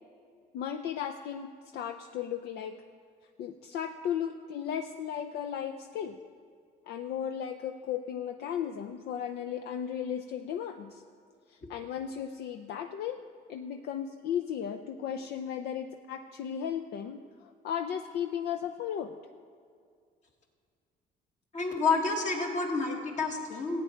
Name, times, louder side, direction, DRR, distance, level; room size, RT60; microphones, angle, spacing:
voice 1, 0.5-2.7 3.4-6.2 6.9-11.0 11.5-13.2 13.5-19.1, left 9 dB, 75° left, 6 dB, 0.6 m, -35 dB
voice 2, 21.5-23.8, left 4 dB, 45° left, 2 dB, 1.8 m, -29 dB
14.5 x 8.9 x 4.5 m, 2.2 s
cardioid pair, 110°, 17 cm